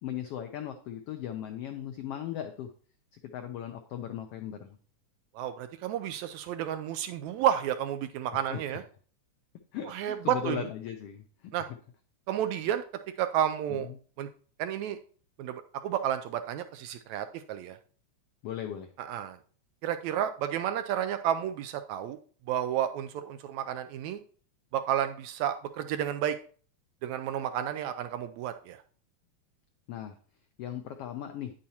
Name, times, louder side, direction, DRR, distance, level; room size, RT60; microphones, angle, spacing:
voice 1, 0.0-2.7 3.1-4.7 8.3-8.6 9.7-11.5 12.6-12.7 13.7-14.0 18.4-18.9 29.9-30.2 30.6-31.5, left 10 dB, 90° left, 6 dB, 1.3 m, -38 dB
voice 2, 5.4-8.8 9.8-10.7 11.5-11.7 12.3-12.8 13.2-13.9 14.2-14.3 14.6-15.0 15.4-17.8 19.0-19.4 19.8-22.2 22.5-24.2 24.7-26.4 27.0-28.8, right 10 dB, 80° right, 9 dB, 1.7 m, -31 dB
9.5 x 8.7 x 2.8 m, 0.43 s
omnidirectional pair, 3.5 m